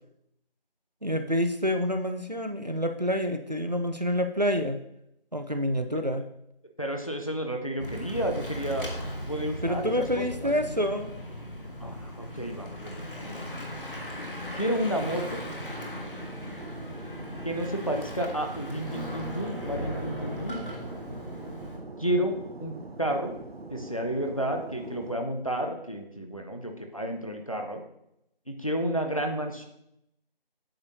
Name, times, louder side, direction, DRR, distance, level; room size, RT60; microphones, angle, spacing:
voice 1, 1.0-4.8 5.3-6.2 9.6-11.1, equal, 45° right, 7 dB, 0.5 m, -27 dB
voice 2, 6.8-8.9 9.3-10.5 11.8-13.6 14.6-15.4 17.4-20.6 22.0-23.3 23.7-27.8 28.5-29.6, right 1 dB, 35° left, 4 dB, 0.7 m, -31 dB
Bicycle / Mechanisms, 7.8-21.8, equal, 60° left, 1.5 m, -39 dB
Fixed-wing aircraft airplane, 14.9-25.1, right 3 dB, 85° right, 0.8 m, -43 dB
sound 1, 18.6-23.7, equal, 20° right, 1.4 m, -40 dB
8.6 x 6.4 x 2.7 m, 0.80 s
figure-of-eight pair, 175°, 30 cm